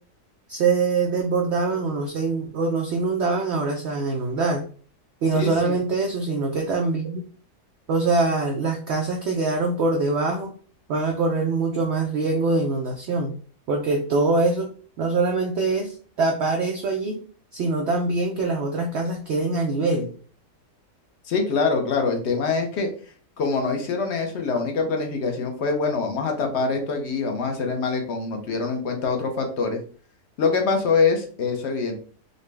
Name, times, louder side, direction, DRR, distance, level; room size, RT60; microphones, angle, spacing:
voice 1, 0.5-4.6 5.2-7.2 7.9-10.5 10.9-13.3 13.7-17.2 17.5-20.1, right 3 dB, 80° right, 2 dB, 0.6 m, -24 dB
voice 2, 5.3-5.8 21.2-22.9 23.4-29.8 30.4-31.9, left 4 dB, 55° left, 4 dB, 0.8 m, -24 dB
3.9 x 2.1 x 3.3 m, 0.42 s
omnidirectional pair, 1.7 m